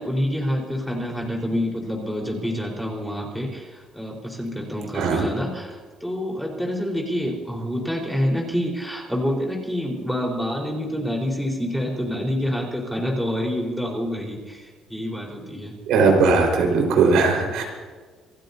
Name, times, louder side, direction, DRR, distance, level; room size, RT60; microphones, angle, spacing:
voice 1, 0.0-15.8, equal, ahead, -1 dB, 4.4 m, -27 dB
voice 2, 4.9-5.2 15.9-17.6, right 4 dB, 85° right, 1 dB, 4.7 m, -18 dB
27.5 x 15.5 x 2.8 m, 1.4 s
cardioid pair, 140°, 0 cm